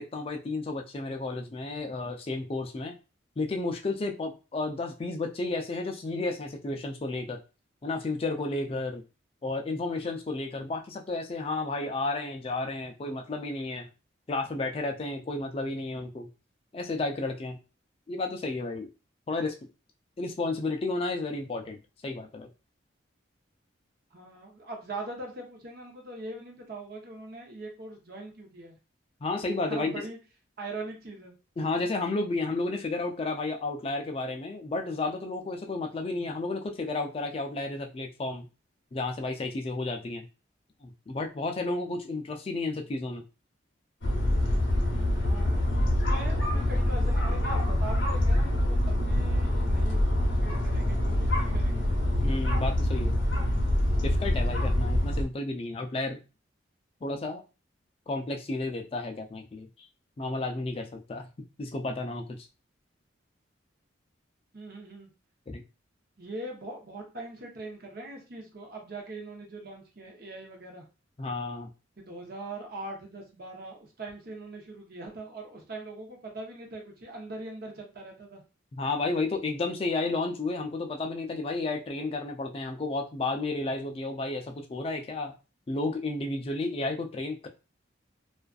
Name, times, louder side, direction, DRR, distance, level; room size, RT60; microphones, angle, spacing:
voice 1, 0.0-2.9 3.4-7.4 7.8-9.0 9.4-13.9 14.3-16.3 16.7-17.6 18.1-18.9 19.3-19.6 20.2-22.5 29.2-29.9 31.6-38.5 38.9-40.3 40.8-43.2 52.2-53.2 54.0-56.2 57.0-57.4 58.1-59.9 60.2-61.3 61.6-62.3 65.5-65.6 71.2-71.7 78.7-85.3 85.7-87.5, left 2 dB, 30° left, 4 dB, 0.3 m, -32 dB
voice 2, 24.1-28.8 29.7-30.2 30.6-31.3 45.2-45.6 45.9-51.9 64.5-65.1 66.2-70.8 72.0-78.4, right 2 dB, 50° right, 1 dB, 0.7 m, -41 dB
sound 1, 44.0-55.2, left 1 dB, 75° left, 0.6 m, -25 dB
2.4 x 2.3 x 2.3 m, 0.31 s
head